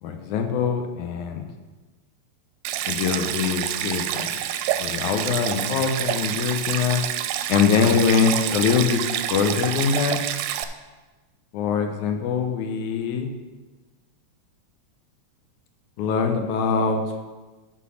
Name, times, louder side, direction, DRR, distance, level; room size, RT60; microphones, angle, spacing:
voice 1, 0.0-1.4 2.9-4.3 4.8-7.0 7.5-10.2 11.5-13.3 16.0-17.0, left 6 dB, 80° left, 5 dB, 2.2 m, -23 dB
Stream, 2.7-10.7, right 11 dB, 85° right, 2.0 m, -27 dB
11.0 x 4.3 x 6.2 m, 1.3 s
omnidirectional pair, 3.4 m